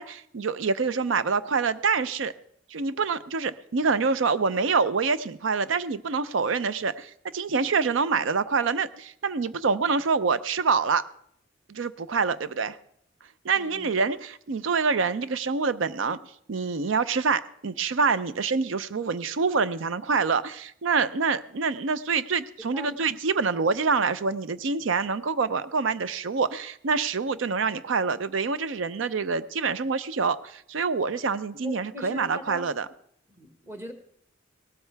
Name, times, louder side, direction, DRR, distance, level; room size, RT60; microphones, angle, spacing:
voice 1, 0.0-2.3 2.7-11.0 11.7-12.8 13.4-16.2 16.5-32.9, right 5 dB, 70° right, 15 dB, 0.6 m, -26 dB
voice 2, 13.5-13.9 22.7-23.0 31.6-32.7 33.3-33.9, left 1 dB, 15° right, 5 dB, 1.5 m, -40 dB
18.0 x 12.5 x 3.4 m, 0.67 s
head